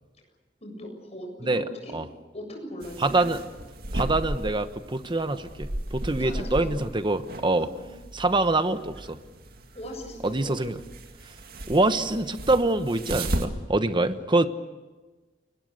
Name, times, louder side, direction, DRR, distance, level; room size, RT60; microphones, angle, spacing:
voice 1, 0.6-1.9 2.3-3.2 6.2-6.7 7.6-8.0 9.7-10.6, equal, 35° left, 2 dB, 7.5 m, -39 dB
sound 1, 2.8-13.4, right 1 dB, 55° right, 2.2 m, -35 dB
voice 2, 3.0-3.4 3.9-7.7 8.1-9.2 10.2-10.7 11.7-14.5, right 2 dB, 25° right, 10 dB, 1.1 m, -25 dB
29.5 x 21.5 x 6.7 m, 1.2 s
head